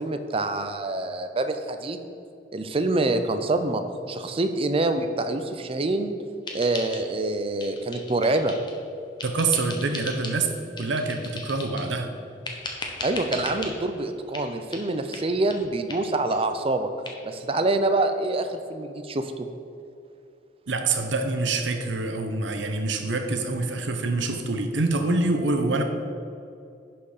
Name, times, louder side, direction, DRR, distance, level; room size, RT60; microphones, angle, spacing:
voice 1, 0.0-2.0 2.5-3.8 4.1-6.2 6.5-8.5 13.0-16.9 17.2-19.5, right 2 dB, 30° right, 8 dB, 0.5 m, -26 dB
sound 1, 6.5-7.3 7.6-8.8 9.2-10.4 10.8-11.9 12.4-13.7 14.3-14.5 14.7-14.8 15.1-15.2 15.5-15.6 15.9-16.0 16.3-16.4 16.7-16.8 17.0-17.1, left 3 dB, 25° left, 0.9 m, -37 dB
voice 2, 9.2-10.5 10.8-12.1 20.7-25.8, right 3 dB, 90° right, 6 dB, 0.8 m, -26 dB
11.0 x 4.5 x 4.9 m, 2.6 s
head